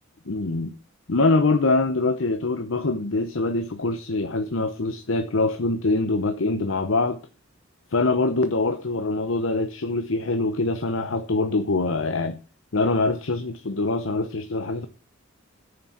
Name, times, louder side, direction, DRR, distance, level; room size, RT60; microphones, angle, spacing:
voice 1, 0.3-0.7 1.1-7.2 7.9-12.4 12.7-14.9, left 3 dB, 70° left, 0.8 m, -24 dB
9.4 x 6.8 x 7.1 m
head